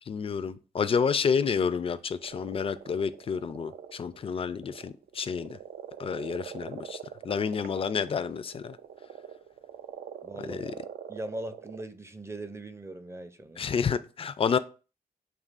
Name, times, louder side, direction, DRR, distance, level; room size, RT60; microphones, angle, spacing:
voice 1, 0.1-5.6 6.0-7.0 7.2-8.8 10.5-10.7 13.6-14.6, left 6 dB, 35° left, 0.4 m, -29 dB
sound 1, 2.2-11.8, right 9 dB, 75° right, 0.4 m, -44 dB
voice 2, 10.2-10.7 11.1-13.7, right 1 dB, 15° right, 0.5 m, -40 dB
6.7 x 2.9 x 2.5 m
cardioid pair, 90°, 16 cm